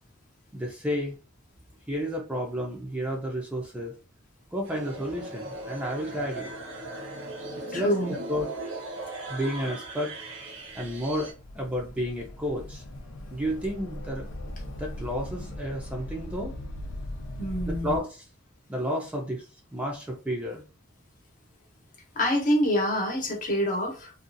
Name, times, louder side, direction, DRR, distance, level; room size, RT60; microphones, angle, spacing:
voice 1, 0.5-1.2 1.9-3.9 4.5-6.6 7.7-8.5 9.3-10.1 10.7-11.3 11.5-12.8 13.3-14.2 14.8-16.5 17.6-18.2 18.7-19.4 19.7-20.6, equal, 5° right, -1 dB, 0.5 m, -31 dB
sound 1, 4.6-11.3, right 2 dB, 70° right, 0.9 m, -38 dB
voice 2, 7.7-8.1 17.4-18.0 22.1-24.1, equal, 40° left, 0 dB, 0.9 m, -26 dB
sound 2, 10.7-18.0, left 1 dB, 70° left, 0.5 m, -39 dB
2.7 x 2.3 x 2.5 m, 0.32 s
head